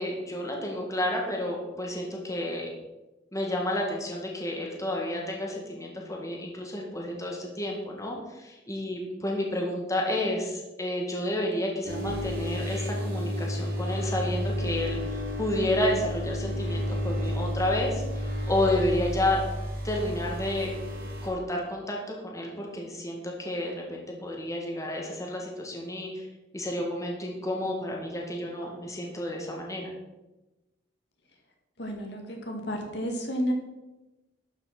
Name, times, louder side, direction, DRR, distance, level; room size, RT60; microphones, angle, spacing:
voice 1, 0.0-2.7 3.3-19.4 19.8-20.7 21.2-26.3 26.5-29.9, left 1 dB, 15° left, -1 dB, 2.1 m, -31 dB
sound 1, 11.8-21.3, equal, 55° right, 4.0 m, -31 dB
voice 2, 31.8-33.5, equal, 65° left, 2 dB, 2.2 m, -31 dB
12.0 x 6.3 x 6.0 m, 1.0 s
head